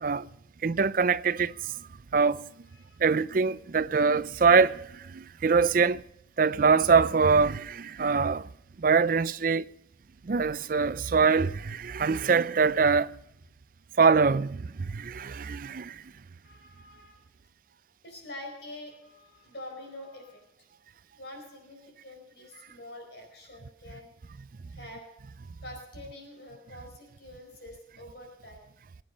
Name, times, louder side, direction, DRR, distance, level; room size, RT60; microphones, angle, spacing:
voice 1, 0.6-1.7 2.1-2.4 3.0-6.0 6.4-8.5 8.8-9.7 10.2-13.2 14.0-16.0, right 5 dB, 45° right, 0.4 m, -24 dB
voice 2, 2.7-3.0 16.4-17.2 18.0-20.5 21.2-24.1 24.7-25.0 25.6-28.7, left 1 dB, 65° left, 4.7 m, -46 dB
21.5 x 8.9 x 5.5 m
head